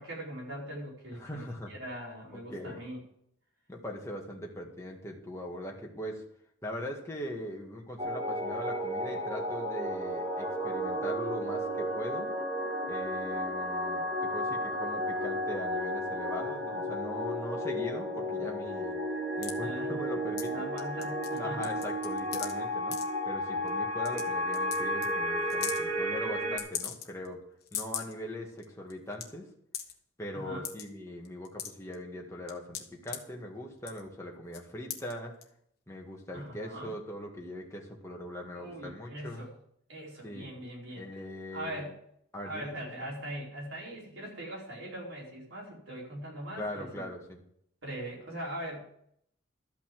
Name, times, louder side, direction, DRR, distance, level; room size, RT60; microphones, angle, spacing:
voice 1, 0.0-3.0 18.3-18.5 19.6-20.0 20.5-21.6 30.3-30.6 36.3-36.9 38.5-39.5 39.9-41.1 41.5-41.9 42.5-47.1 47.8-48.9, right 1 dB, 80° right, -3 dB, 4.7 m, -41 dB
voice 2, 1.1-1.7 2.3-2.8 3.7-6.2 6.6-12.3 12.9-19.0 19.4-20.7 21.4-27.4 27.7-29.5 30.2-35.3 35.9-39.5 40.2-40.5 41.0-41.8 42.3-43.1 46.6-47.4, left 1 dB, 15° left, -1 dB, 2.0 m, -41 dB
sound 1, 8.0-26.6, equal, 20° right, 1.9 m, -33 dB
sound 2, 19.4-19.5 20.4-20.5 20.8-21.4 21.6-22.5 22.9-23.0 23.7-23.8 24.1-24.2 24.5-24.8 25.0-25.1 25.5-25.8 26.6-27.3 27.6-28.1 28.6-28.7 28.9-29.2 29.7-29.9 30.6-30.8 31.3-31.9 32.5-33.2 33.8-34.1 34.5-34.6 34.9-35.1 35.4-35.5, left 10 dB, 55° left, 1.3 m, -37 dB
12.5 x 5.8 x 7.7 m, 0.70 s
head